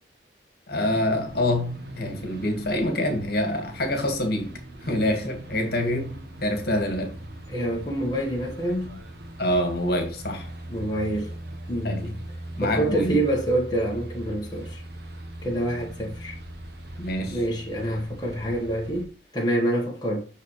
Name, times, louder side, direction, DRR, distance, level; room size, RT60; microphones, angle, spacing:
voice 1, 0.7-4.5 4.8-7.2 9.4-10.5 11.8-12.1 12.6-13.2 17.0-17.4, left 1 dB, 60° left, 1.9 m, -26 dB
sound 1, 0.7-19.0, right 1 dB, 60° right, 1.3 m, -40 dB
voice 2, 7.5-9.0 10.7-11.3 11.7-12.1 12.6-14.8 15.4-16.3 17.3-20.2, right 1 dB, 25° left, 1.5 m, -27 dB
6.6 x 6.5 x 3.2 m
head